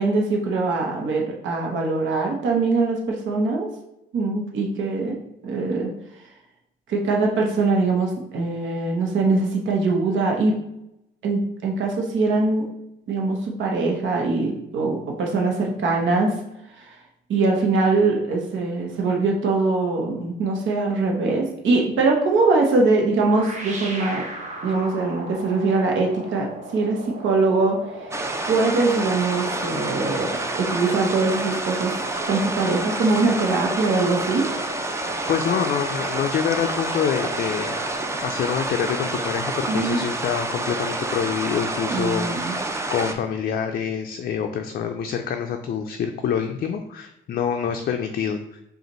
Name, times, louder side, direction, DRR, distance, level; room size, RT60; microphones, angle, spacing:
voice 1, 0.0-3.7 4.1-5.2 5.4-5.9 6.9-10.6 11.2-12.7 13.1-16.3 16.7-16.9 17.3-24.2 24.6-26.5 26.7-28.2 28.5-30.3 30.6-31.9 32.3-34.5 39.7-40.0 41.9-42.6, right 3 dB, 75° right, 0 dB, 1.0 m, -22 dB
sound 1, 23.2-42.0, right 1 dB, 35° right, 1.1 m, -39 dB
sound 2, 28.1-43.1, right 2 dB, 15° right, 0.4 m, -28 dB
voice 2, 35.3-37.9 38.2-42.6 42.9-48.6, left 7 dB, 50° left, 5 dB, 0.4 m, -26 dB
5.0 x 2.5 x 3.0 m, 0.84 s
cardioid pair, 90°, 20 cm